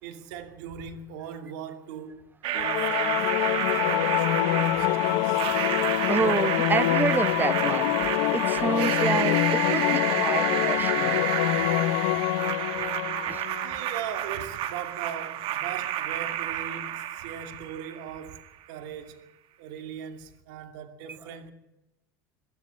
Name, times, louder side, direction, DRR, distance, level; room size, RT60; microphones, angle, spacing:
voice 1, 0.0-2.2 2.5-5.4 13.5-18.4 18.7-19.2 19.6-21.5, right 8 dB, 80° right, 2.7 m, -39 dB
sound 1, 2.4-18.4, right 12 dB, 65° right, 1.5 m, -30 dB
Singing / Musical instrument, 2.5-13.8, left 16 dB, 75° left, 0.7 m, -26 dB
voice 2, 6.1-8.0 8.3-11.2 13.2-13.4, right 4 dB, 20° right, 0.7 m, -28 dB
23.5 x 13.0 x 8.8 m
supercardioid pair, 85°, 10 cm